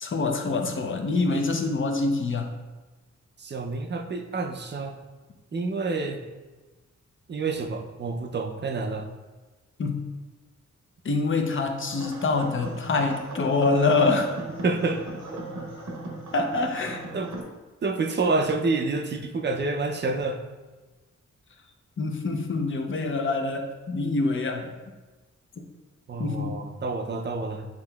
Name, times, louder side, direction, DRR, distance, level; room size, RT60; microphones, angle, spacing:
voice 1, 0.0-2.5 9.8-10.0 11.0-14.3 16.3-17.0 22.0-24.7 25.6-25.7 26.2-26.6, left 3 dB, 45° left, 4 dB, 0.6 m, -25 dB
voice 2, 3.4-5.0 5.5-6.3 7.3-9.1 14.6-15.1 17.1-17.4 17.8-20.4 26.1-27.7, right 3 dB, 40° right, 4 dB, 0.4 m, -28 dB
sound 1, 11.9-17.4, right 1 dB, 80° right, 0.8 m, -38 dB
7.2 x 2.8 x 2.3 m, 1.2 s
wide cardioid pair, 105°, 29 cm